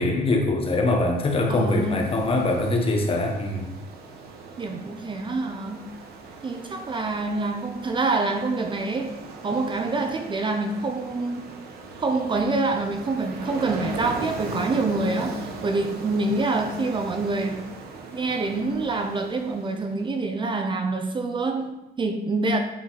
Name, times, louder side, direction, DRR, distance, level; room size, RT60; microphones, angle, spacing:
voice 1, 0.0-3.7, left 2 dB, 35° left, 2 dB, 1.3 m, -23 dB
Ocean, 1.0-20.2, right 3 dB, 65° right, 1.2 m, -39 dB
voice 2, 1.5-2.2 4.6-5.9 6.4-11.6 12.0-17.7 18.1-22.6, right 3 dB, 30° right, 6 dB, 0.6 m, -26 dB
8.6 x 3.9 x 4.2 m, 0.96 s
cardioid pair, 110°, 17 cm